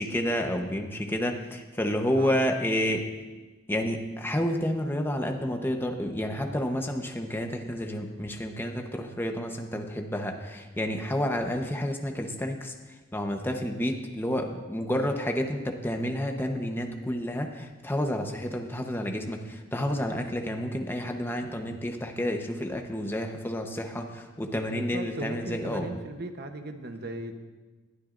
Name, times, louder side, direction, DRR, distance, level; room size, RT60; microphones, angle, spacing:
voice 1, 0.0-3.0 3.7-12.7 13.1-25.9, equal, 10° left, 3 dB, 1.0 m, -30 dB
voice 2, 24.7-27.3, right 1 dB, 55° right, 6 dB, 1.0 m, -37 dB
20.5 x 12.0 x 2.6 m, 1.3 s
head